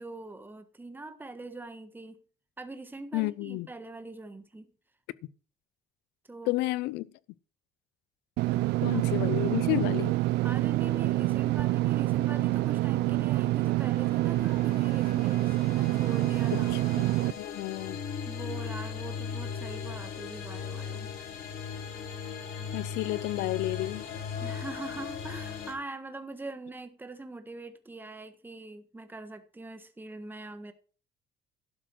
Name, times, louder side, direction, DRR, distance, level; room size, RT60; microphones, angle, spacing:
voice 1, 0.0-2.2 2.6-4.7 6.3-6.5 8.5-9.0 10.4-16.7 18.2-21.1 24.4-30.7, right 2 dB, 10° right, 1.4 m, -42 dB
voice 2, 3.1-3.7 6.4-7.1 8.8-10.2 16.5-18.0 22.7-24.1, left 19 dB, 90° left, 0.6 m, -31 dB
Engine / Mechanisms, 8.4-17.3, right 18 dB, 80° right, 0.4 m, -26 dB
sound 1, 13.5-25.7, left 6 dB, 70° left, 3.4 m, -38 dB
12.0 x 6.2 x 6.2 m
cardioid pair, 110°, 17 cm